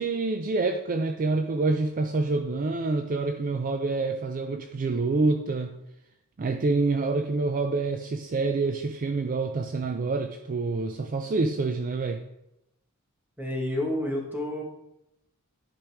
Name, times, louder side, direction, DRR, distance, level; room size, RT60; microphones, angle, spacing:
voice 1, 0.0-5.8 6.4-12.2, right 3 dB, 40° right, 7 dB, 0.4 m, -27 dB
voice 2, 13.4-14.6, left 1 dB, 10° right, 0 dB, 1.4 m, -29 dB
11.0 x 5.0 x 3.5 m, 0.87 s
head